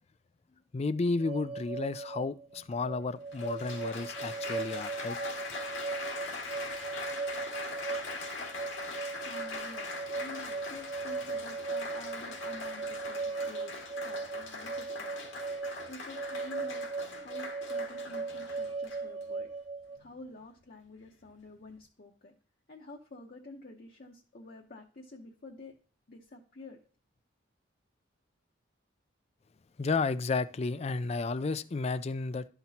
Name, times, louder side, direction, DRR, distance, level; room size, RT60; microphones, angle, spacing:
voice 1, 0.7-5.2 29.8-32.5, left 3 dB, 35° left, 0.4 m, -32 dB
sound 1, 1.2-20.0, right 4 dB, 30° right, 0.8 m, -38 dB
Applause, 2.5-2.6 3.3-19.2 20.0-20.3, left 3 dB, 85° left, 2.0 m, -42 dB
voice 2, 9.2-19.5 20.0-22.4 22.7-25.7 26.1-26.8, left 2 dB, 50° left, 0.8 m, -49 dB
12.0 x 5.9 x 2.8 m
head